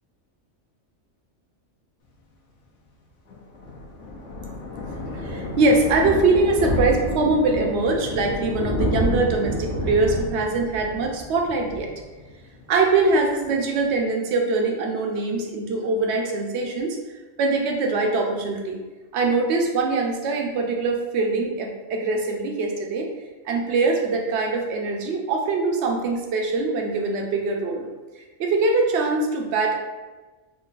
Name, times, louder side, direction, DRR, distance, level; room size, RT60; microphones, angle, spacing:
Thunder, 3.3-12.7 13.0-13.2 13.5-13.6 13.8-13.9, left 1 dB, 70° left, 1.0 m, -29 dB
voice 1, 5.1-11.9 12.7-17.0 17.4-18.8 19.1-23.1 23.4-27.9 28.2-29.8, right 3 dB, 65° right, 2 dB, 0.8 m, -23 dB
3.8 x 2.5 x 2.4 m, 1.2 s
omnidirectional pair, 1.4 m